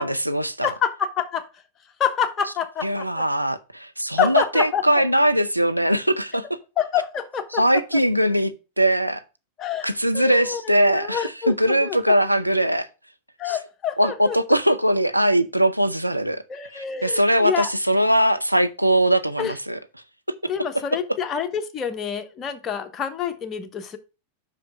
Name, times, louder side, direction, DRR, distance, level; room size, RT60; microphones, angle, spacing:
voice 1, 0.0-0.7 2.8-6.6 7.5-8.5 8.8-9.2 9.8-12.9 13.5-13.6 14.0-16.4 16.7-19.8, right 1 dB, 90° right, 0.5 m, -21 dB
voice 2, 0.6-1.5 2.0-3.2 4.2-4.8 6.8-7.6 9.6-9.9 10.1-12.0 13.4-14.4 16.5-17.7 19.4-19.5 20.5-24.0, left 8 dB, 25° left, 1.1 m, -27 dB
5.9 x 5.0 x 5.4 m
figure-of-eight pair, 90°, 0 cm